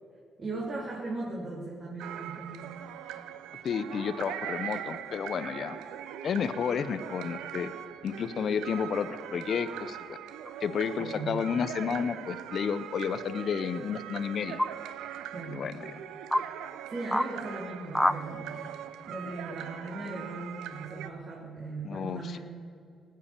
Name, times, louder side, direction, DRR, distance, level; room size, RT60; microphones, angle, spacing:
voice 1, 0.4-2.7 11.0-11.4 15.3-15.7 16.9-18.6 19.1-22.4, right 3 dB, 40° right, -3 dB, 2.6 m, -38 dB
sound 1, 2.0-21.1, right 10 dB, 90° right, 0.6 m, -41 dB
voice 2, 3.6-5.8 6.2-7.7 8.0-10.2 10.6-14.6 15.5-15.8 21.8-22.4, left 7 dB, 55° left, 12 dB, 0.7 m, -31 dB
sound 2, 10.4-10.5 12.0-12.5 14.6-14.7 15.5-15.6 16.3-16.5 17.1-17.3 17.9-18.2, left 1 dB, 5° left, 0.5 m, -27 dB
19.0 x 7.6 x 6.9 m, 2.4 s
cardioid pair, 90°, 0 cm